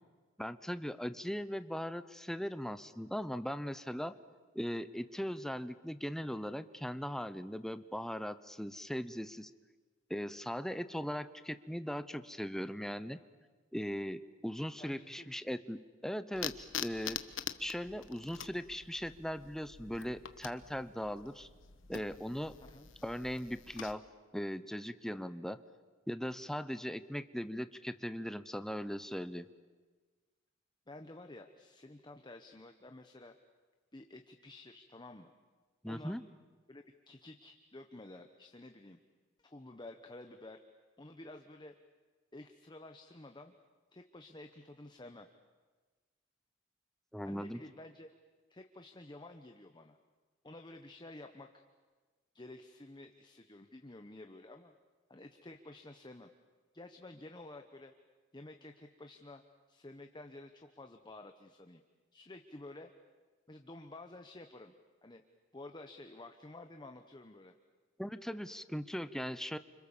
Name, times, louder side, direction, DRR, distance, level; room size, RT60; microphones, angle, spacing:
voice 1, 0.4-4.1 4.5-9.5 10.1-13.2 13.7-17.2 17.6-21.5 21.9-22.6 23.0-24.0 24.3-25.6 26.1-29.5 35.8-36.3 47.1-47.6 68.0-69.6, equal, 5° left, 12 dB, 0.8 m, -39 dB
voice 2, 14.8-15.6 22.6-22.9 30.9-33.4 33.9-35.3 35.9-36.2 36.7-39.0 39.4-40.6 41.0-41.7 42.3-43.5 43.9-45.3 47.2-48.1 48.5-50.0 50.4-51.6 52.3-54.7 55.1-56.3 56.7-57.9 58.3-59.4 59.7-61.8 62.1-62.9 63.5-64.7 65.0-65.2 65.5-67.5, left 2 dB, 25° left, 6 dB, 1.1 m, -51 dB
sound 1, 16.3-23.9, left 9 dB, 85° left, 1.2 m, -45 dB
29.5 x 26.5 x 7.3 m, 1.4 s
head